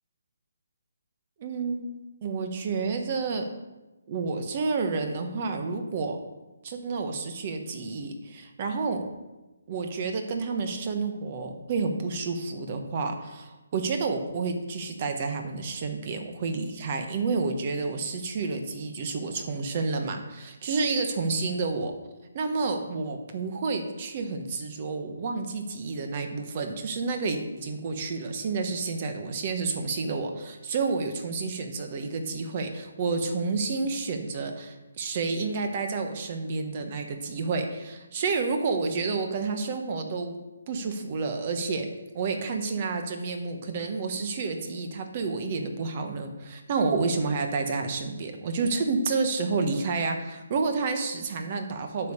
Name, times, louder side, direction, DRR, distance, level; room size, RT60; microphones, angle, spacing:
voice 1, 1.4-1.9 2.2-3.5 4.1-6.2 6.6-9.0 9.7-21.9 22.3-40.4 40.7-41.9 42.1-52.1, right 4 dB, 30° right, 5 dB, 1.1 m, -30 dB
9.1 x 5.5 x 6.7 m, 1.1 s
hypercardioid pair, 165°, 0 cm